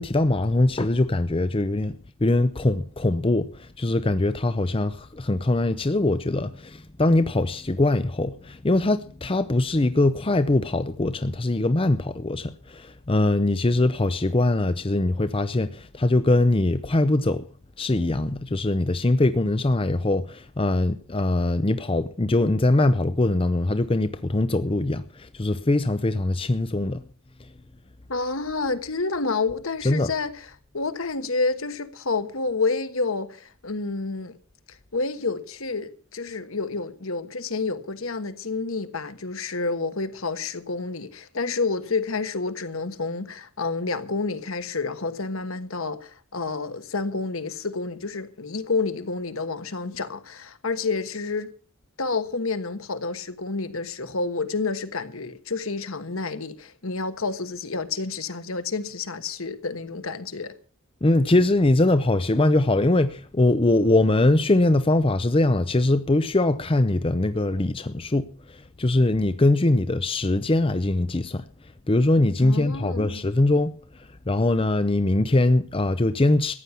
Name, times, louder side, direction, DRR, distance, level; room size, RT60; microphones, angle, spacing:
voice 1, 0.0-17.4 17.8-27.0 29.8-30.1 61.0-68.3 68.8-71.4 71.9-73.7 74.3-76.5, left 2 dB, 25° left, 0.6 m, -22 dB
voice 2, 28.1-34.4 34.7-51.5 52.0-60.5 72.4-73.2, left 3 dB, 70° left, 1.4 m, -29 dB
14.5 x 9.9 x 6.9 m
head